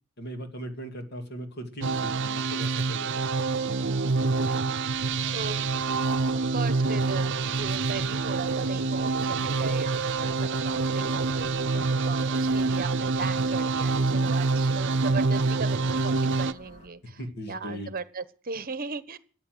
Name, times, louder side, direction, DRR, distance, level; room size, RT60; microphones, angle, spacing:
voice 1, 0.2-3.9 11.7-12.0 17.2-17.9, right 1 dB, 50° left, 5 dB, 2.4 m, -40 dB
sound 1, 1.8-16.5, right 3 dB, 60° right, 0.7 m, -26 dB
voice 2, 4.3-4.6 5.3-5.6 6.3-17.2 17.5-19.2, right 4 dB, 45° right, 14 dB, 1.0 m, -37 dB
sound 2, 4.9-16.9, equal, 35° left, 4.9 m, -51 dB
14.0 x 9.0 x 7.8 m, 0.43 s
head